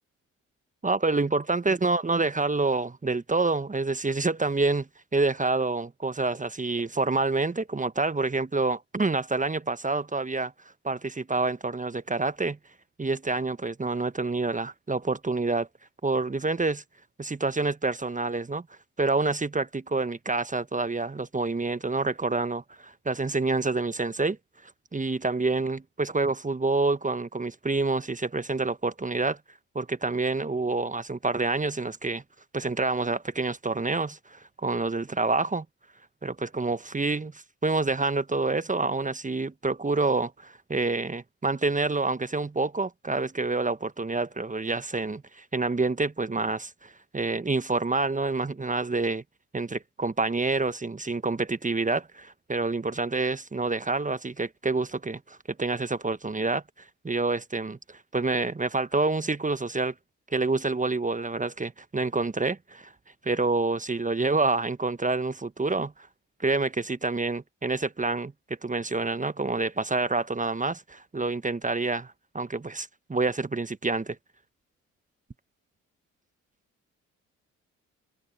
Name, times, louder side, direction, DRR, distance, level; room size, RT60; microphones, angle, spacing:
voice 1, 0.8-10.5 10.8-12.6 13.0-15.7 16.0-16.8 17.2-18.6 19.0-24.4 24.6-29.4 29.7-32.2 32.5-35.6 36.2-49.2 49.5-56.6 57.0-59.9 60.3-62.9 63.2-65.9 66.4-68.3 68.6-74.2, right 3 dB, 20° right, 1.4 m, -27 dB
figure-of-eight pair, 40°, 38 cm